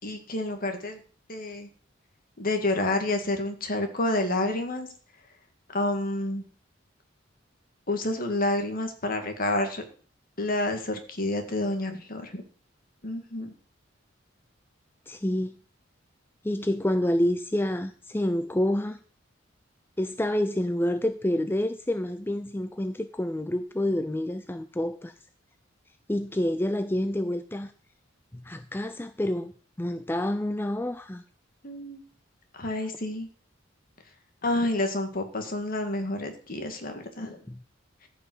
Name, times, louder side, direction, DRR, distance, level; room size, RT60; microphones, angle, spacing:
voice 1, 0.0-1.0 1.3-1.7 2.4-4.9 5.7-6.4 7.9-9.8 10.4-12.4 13.0-13.5 31.6-32.0 32.5-33.3 34.4-37.4, left 2 dB, 45° left, 2.2 m, -29 dB
voice 2, 15.1-15.6 16.4-19.0 20.0-25.1 26.1-27.7 28.4-29.5 29.8-31.2, left 1 dB, 10° left, 0.5 m, -28 dB
14.0 x 5.6 x 8.0 m
head